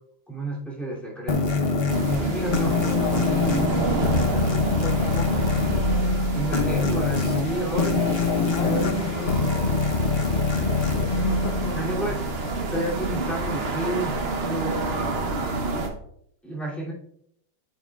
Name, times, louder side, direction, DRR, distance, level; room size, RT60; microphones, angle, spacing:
voice 1, 0.3-1.5 2.1-3.4 4.1-4.4 6.3-8.1 8.6-9.0 9.4-9.5 11.7-12.2 12.7-14.8 15.6-15.9 16.4-16.9, right 1 dB, ahead, -6 dB, 2.6 m, -31 dB
sound 1, 1.3-12.4, left 4 dB, 50° left, 0.7 m, -25 dB
sound 2, 1.9-15.9, right 2 dB, 55° right, 0.7 m, -28 dB
voice 2, 4.3-5.5 8.5-9.7 10.5-12.0, left 6 dB, 75° left, 6 dB, 1.3 m, -36 dB
8.6 x 7.6 x 2.4 m, 0.70 s
omnidirectional pair, 2.2 m